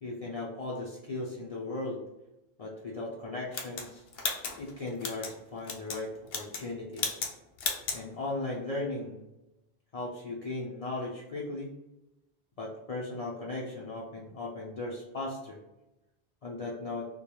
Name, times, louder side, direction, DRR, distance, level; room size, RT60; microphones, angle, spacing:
voice 1, 0.0-2.0 2.6-4.0 4.6-7.2 7.9-9.2 9.9-11.7 12.6-15.6 16.4-17.1, left 2 dB, 55° left, -4 dB, 0.4 m, -37 dB
sound 1, 3.5-5.3 5.6-6.0 6.3-6.7 7.0-7.3 7.6-8.0, left 5 dB, 75° left, 0.8 m, -34 dB
2.2 x 2.2 x 2.9 m, 0.93 s
omnidirectional pair, 1.0 m